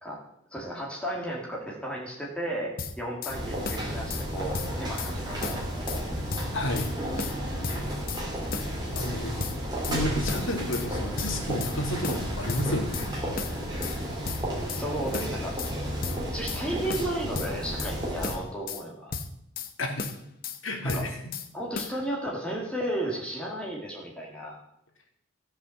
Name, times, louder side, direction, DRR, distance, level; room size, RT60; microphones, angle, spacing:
voice 1, 0.5-5.9 13.7-14.0 14.7-15.6 16.3-19.1 20.9-21.0 21.5-24.6, right 1 dB, 5° left, -3 dB, 2.2 m, -34 dB
sound 1, 2.8-3.4 3.7-4.3 4.5-5.1 5.4-6.0 6.3-6.9 7.2-8.2 8.5-9.1 9.4-10.0 10.3-10.9 11.2-11.8 12.0-13.1 13.4-14.0 14.3-14.9 15.1-15.7 16.0-16.6 16.9-18.0 18.2-18.8 19.1-19.7 20.0-20.6 20.9-21.5 21.8-22.0, left 5 dB, 45° left, 0.8 m, -35 dB
sound 2, 3.3-18.3, equal, 20° right, 2.9 m, -32 dB
voice 2, 6.5-6.9 8.4-9.5 9.8-13.1 13.3-14.2 19.8-20.1 20.6-21.2, left 1 dB, 65° left, 3 dB, 1.9 m, -32 dB
14.5 x 5.6 x 7.1 m, 0.78 s
head